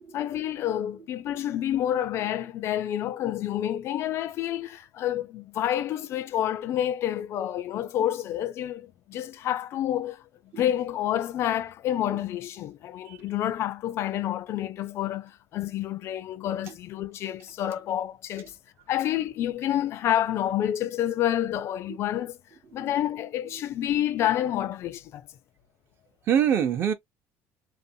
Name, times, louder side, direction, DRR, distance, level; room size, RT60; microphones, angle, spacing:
voice 1, 0.1-10.3 10.6-18.5 18.9-22.4 22.7-25.3, left 11 dB, 50° left, 0.3 m, -28 dB
voice 2, 26.3-26.9, right 9 dB, 45° right, 0.6 m, -24 dB
2.5 x 2.1 x 2.6 m
cardioid pair, 135°, 6 cm